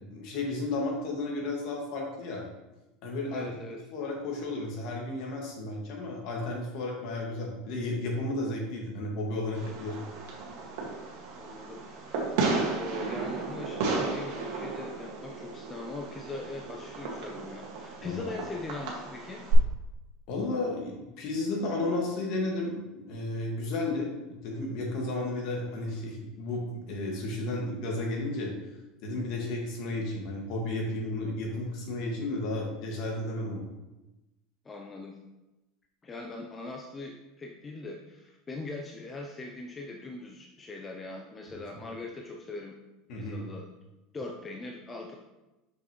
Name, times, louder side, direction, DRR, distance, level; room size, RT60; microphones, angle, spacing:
voice 1, 0.1-2.4 3.0-3.5 3.9-10.0 18.0-18.2 20.3-28.5 29.0-33.7 43.1-43.4, left 2 dB, 55° left, -1 dB, 1.8 m, -33 dB
voice 2, 3.3-3.9 11.3-12.4 12.7-19.5 34.6-35.2 36.0-42.8 43.2-43.7 44.1-45.2, left 3 dB, 15° left, 1 dB, 0.5 m, -41 dB
Fireworks, 9.5-19.5, right 4 dB, 70° right, 1.7 m, -34 dB
6.5 x 5.7 x 3.0 m, 1.0 s
supercardioid pair, 155°, 0 cm